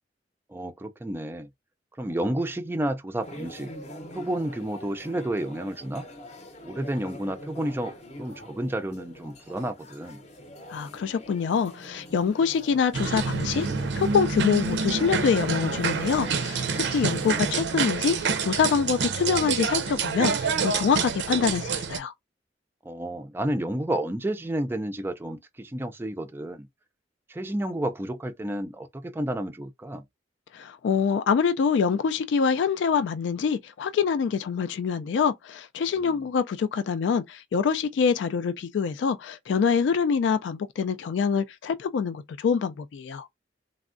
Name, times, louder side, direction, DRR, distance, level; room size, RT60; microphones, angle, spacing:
voice 1, 0.5-1.5 2.0-3.7 4.1-6.1 6.6-10.2 17.2-17.3 22.8-26.7 27.3-30.0 36.0-36.2, right 1 dB, 15° right, 0.3 m, -31 dB
sound 1, 3.2-17.5, equal, 40° left, 0.6 m, -44 dB
voice 2, 10.7-13.7 13.9-22.1 30.5-43.3, left 6 dB, 90° left, 0.3 m, -25 dB
sound 2, 12.9-22.0, right 5 dB, 80° right, 0.5 m, -27 dB
3.4 x 2.0 x 2.4 m
head